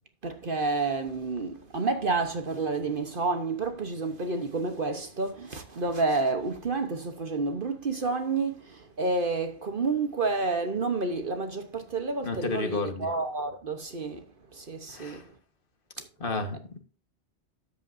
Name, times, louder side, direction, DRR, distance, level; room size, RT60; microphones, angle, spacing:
voice 1, 0.2-14.2 14.5-15.2, right 3 dB, 55° right, 1.2 m, -29 dB
voice 2, 12.2-13.1 14.9-15.2 16.2-16.8, left 3 dB, 50° left, 1.7 m, -31 dB
12.5 x 8.3 x 2.6 m
omnidirectional pair, 1.1 m